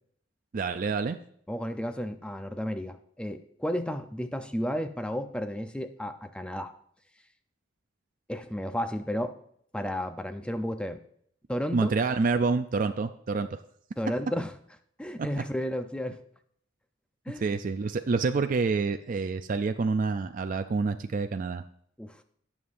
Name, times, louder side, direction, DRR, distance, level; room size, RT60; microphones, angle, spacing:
voice 1, 0.5-1.2 11.7-13.6 17.4-21.6, right 4 dB, 45° right, 8 dB, 0.4 m, -27 dB
voice 2, 1.5-6.7 8.3-9.4 9.7-11.0 11.5-11.9 14.0-14.5 15.0-16.2 17.3-17.4 22.0-22.2, equal, 5° left, 8 dB, 0.6 m, -32 dB
17.5 x 7.2 x 2.6 m, 0.66 s
head